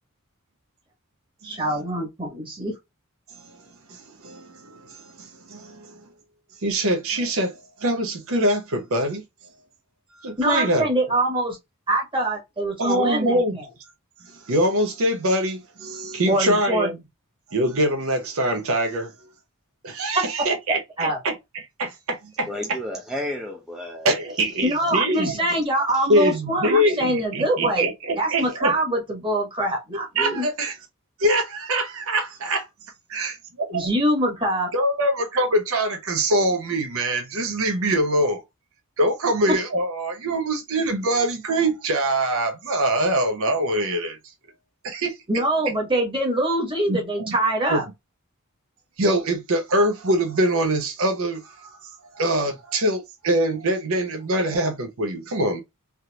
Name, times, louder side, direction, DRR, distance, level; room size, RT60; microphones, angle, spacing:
voice 1, 1.4-2.7 10.4-11.6 11.9-13.6 16.3-16.9 20.1-20.3 20.7-21.2 24.6-27.8 28.2-30.5 33.7-34.7 39.5-39.6 45.3-47.8, right 1 dB, 25° right, 1.5 m, -24 dB
voice 2, 3.9-6.0 6.6-9.2 10.2-10.9 12.8-13.6 14.5-17.0 17.5-19.1 19.8-22.5 24.0-25.4 26.1-28.7 30.2-30.8 31.2-32.7 33.1-33.9 34.7-38.4 39.0-44.2 44.8-45.2 46.9-47.3 47.7-47.8 49.0-55.6, right 1 dB, 65° right, 0.7 m, -24 dB
voice 3, 22.5-24.1 25.9-26.3, left 1 dB, ahead, 0.5 m, -32 dB
3.5 x 2.9 x 2.3 m
head